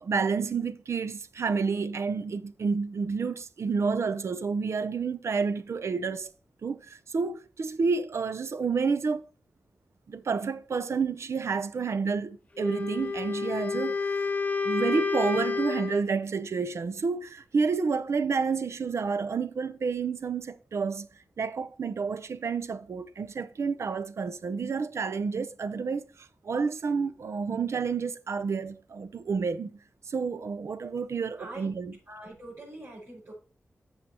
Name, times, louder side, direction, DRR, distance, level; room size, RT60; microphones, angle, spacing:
voice 1, 0.0-6.3 6.6-9.3 10.1-14.1 14.6-21.1 21.4-26.1 26.4-29.7 30.1-32.0, right 5 dB, 75° right, 0.6 m, -29 dB
Wind instrument woodwind instrument, 12.6-16.1, left 4 dB, 30° left, 0.9 m, -29 dB
voice 2, 31.4-31.7 32.1-33.3, right 2 dB, 50° right, 5.3 m, -43 dB
14.0 x 5.6 x 2.9 m
wide cardioid pair, 125°, 5 cm